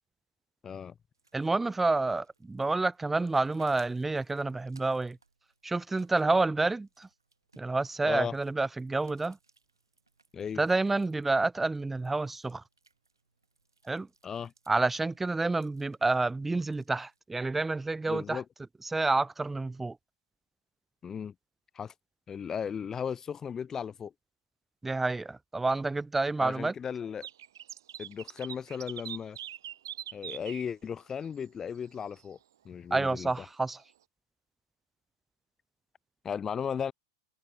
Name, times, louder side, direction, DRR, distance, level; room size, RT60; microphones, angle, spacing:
voice 1, 0.6-0.9 8.0-8.4 10.3-10.6 14.2-14.5 18.1-18.4 21.0-21.3 21.7-21.9 22.3-24.1 26.4-27.3 28.0-29.4 30.1-32.4 32.6-33.4 36.2-36.9, left 7 dB, 20° left, 0.8 m, -36 dB
sound 1, 1.1-17.2, right 4 dB, 90° right, 5.9 m, -68 dB
voice 2, 1.3-5.2 5.6-7.1 7.6-9.4 10.6-12.6 13.9-14.1 14.7-18.4 18.8-20.0 24.8-26.7 32.9-33.8, right 3 dB, 10° right, 0.5 m, -29 dB
sound 2, 27.2-30.7 31.2-31.3 31.7-31.8 32.2-32.3, right 11 dB, 70° right, 1.8 m, -42 dB
hypercardioid pair, 100°, 2 cm